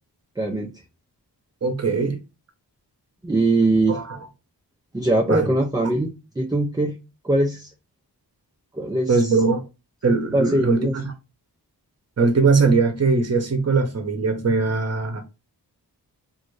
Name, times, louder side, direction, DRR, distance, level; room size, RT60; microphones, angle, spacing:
voice 1, 0.4-0.7 3.2-4.0 4.9-7.0 7.2-7.7 8.7-9.3 10.3-11.0, right 2 dB, 10° right, 0.4 m, -21 dB
voice 2, 1.6-2.2 3.9-4.2 5.3-5.5 9.1-9.6 10.0-11.0 12.2-15.2, right 4 dB, 40° right, 0.7 m, -20 dB
2.6 x 2.5 x 3.1 m
wide cardioid pair, 75°, 41 cm